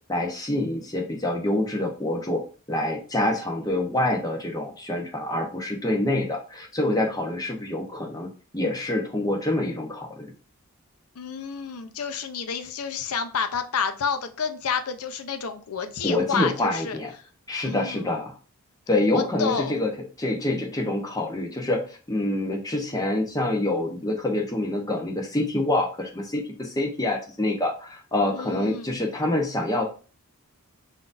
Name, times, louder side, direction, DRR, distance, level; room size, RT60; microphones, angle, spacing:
voice 1, 0.1-2.4 2.7-10.3 16.0-17.1 17.5-18.3 18.9-19.9 20.2-29.8, left 1 dB, 15° left, 0.8 m, -26 dB
voice 2, 11.2-17.0 17.6-18.0 19.1-19.8 28.3-28.9, left 6 dB, 80° left, 0.6 m, -29 dB
5.7 x 2.6 x 2.5 m
head